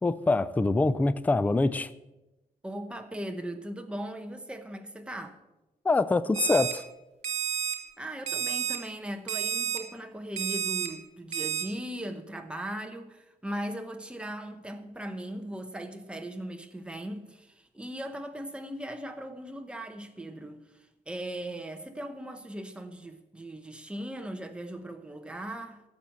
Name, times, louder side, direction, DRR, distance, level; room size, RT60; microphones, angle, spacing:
voice 1, 0.0-1.9 5.8-6.9, left 3 dB, 10° left, 0.3 m, -24 dB
voice 2, 2.6-5.4 8.0-25.8, right 1 dB, 5° right, 1.0 m, -38 dB
Alarm, 6.3-6.7 7.2-7.8 8.3-8.8 9.3-9.8 10.4-10.9 11.3-11.6, right 9 dB, 50° right, 2.0 m, -30 dB
11.5 x 7.0 x 7.7 m
wide cardioid pair, 150°, 15 cm